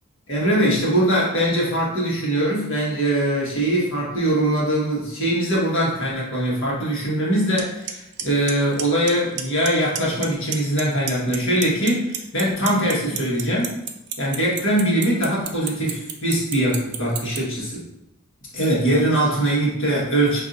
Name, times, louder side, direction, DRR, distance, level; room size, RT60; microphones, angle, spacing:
voice 1, 0.3-13.7 14.2-17.8 18.5-20.4, right 1 dB, 65° left, -5 dB, 1.5 m, -22 dB
Clock, 7.6-7.7 7.9-8.2 8.5-9.1 9.4-9.7 10.0-10.8 11.1-17.4, right 11 dB, 55° right, 0.4 m, -27 dB
5.3 x 2.7 x 2.6 m, 0.89 s
head